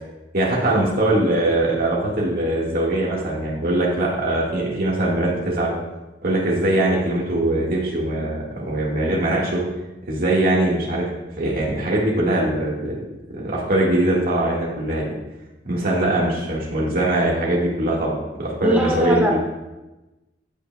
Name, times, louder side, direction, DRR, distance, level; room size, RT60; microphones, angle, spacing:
voice 1, 0.3-5.7 6.2-9.6 10.1-11.1 11.4-13.0 13.3-15.1 15.6-19.4, right 1 dB, 55° right, -4 dB, 1.6 m, -21 dB
voice 2, 18.6-19.4, right 1 dB, 10° right, 0 dB, 1.3 m, -20 dB
15.5 x 5.7 x 2.2 m, 1.1 s
head